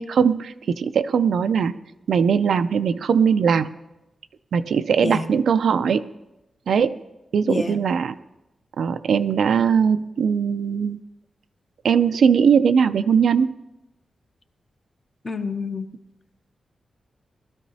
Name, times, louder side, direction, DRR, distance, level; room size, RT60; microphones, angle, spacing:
voice 1, 0.0-1.8 2.1-3.7 4.5-6.1 6.7-7.0 7.3-8.2 8.8-11.0 11.8-13.5, right 6 dB, 90° right, 10 dB, 0.4 m, -20 dB
voice 2, 7.4-7.8 15.2-15.9, left 4 dB, 30° left, 7 dB, 0.6 m, -28 dB
20.0 x 13.0 x 2.8 m, 0.94 s
wide cardioid pair, 180°, 0 cm